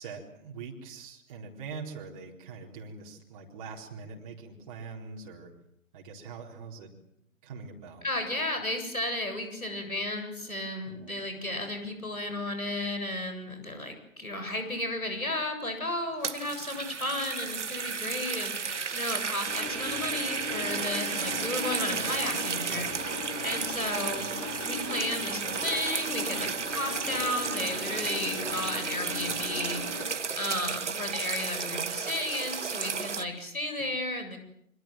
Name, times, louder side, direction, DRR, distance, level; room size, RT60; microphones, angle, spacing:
voice 1, 0.0-5.5 5.9-6.9 7.4-8.0 10.8-11.1, right 5 dB, 25° right, -1 dB, 4.2 m, -43 dB
voice 2, 8.0-24.3 24.6-30.0 30.3-34.4, left 1 dB, 85° left, 6 dB, 7.7 m, -34 dB
sound 1, 16.0-33.2, right 5 dB, 55° right, 1.7 m, -33 dB
sound 2, 19.5-30.0, left 3 dB, 15° left, 6.0 m, -39 dB
26.0 x 25.5 x 7.7 m, 0.71 s
figure-of-eight pair, 145°, 41 cm